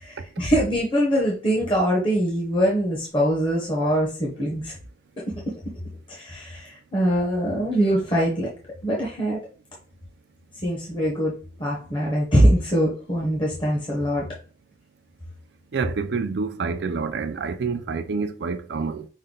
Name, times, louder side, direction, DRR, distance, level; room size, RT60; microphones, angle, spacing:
voice 1, 0.0-4.7 6.1-8.5 8.8-9.4 10.6-11.3 11.6-14.2, equal, 30° left, 0.9 m, -23 dB
voice 2, 15.7-19.1, right 4 dB, 65° right, 0.4 m, -27 dB
5.3 x 2.2 x 3.7 m
head